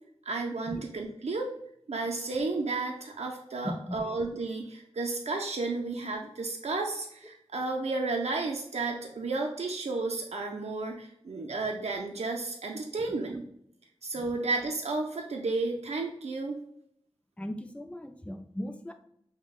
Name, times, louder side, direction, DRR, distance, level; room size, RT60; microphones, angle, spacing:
voice 1, 0.3-1.5 1.9-13.5 14.0-16.6, right 3 dB, 90° right, 1 dB, 0.4 m, -32 dB
voice 2, 3.6-4.0 14.2-14.3 17.4-18.9, left 1 dB, 10° left, 5 dB, 0.4 m, -37 dB
5.3 x 2.1 x 2.3 m, 0.72 s
wide cardioid pair, 50°, 11 cm